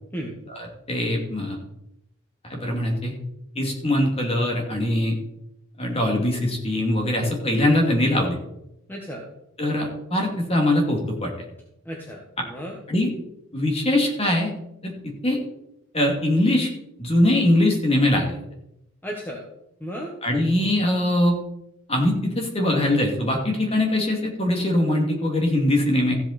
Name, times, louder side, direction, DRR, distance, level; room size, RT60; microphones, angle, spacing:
voice 1, 0.5-1.6 2.4-3.1 3.6-5.2 5.8-8.4 9.6-11.3 12.9-13.1 13.5-14.5 14.8-14.9 15.2-15.4 15.9-16.7 17.0-18.4 20.2-21.4 21.9-26.1, left 1 dB, 30° left, 1 dB, 2.5 m, -22 dB
voice 2, 8.9-9.2 11.8-12.8 19.0-19.4 19.8-20.1, equal, 10° left, -1 dB, 1.4 m, -34 dB
14.5 x 8.1 x 4.3 m, 0.83 s
head